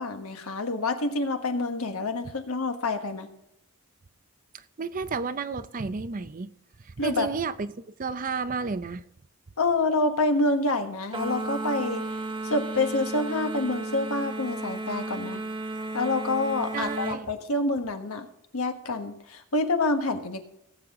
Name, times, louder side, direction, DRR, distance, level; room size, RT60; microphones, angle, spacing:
voice 1, 0.0-3.3 7.0-7.3 9.6-12.0 12.4-15.4 15.9-18.3 18.5-20.4, left 2 dB, 80° left, 1.4 m, -27 dB
voice 2, 4.8-6.5 7.0-9.0 16.7-17.2, right 4 dB, 40° right, 0.5 m, -31 dB
sound 1, 11.1-17.2, right 2 dB, 20° right, 1.4 m, -33 dB
18.0 x 7.9 x 3.7 m
head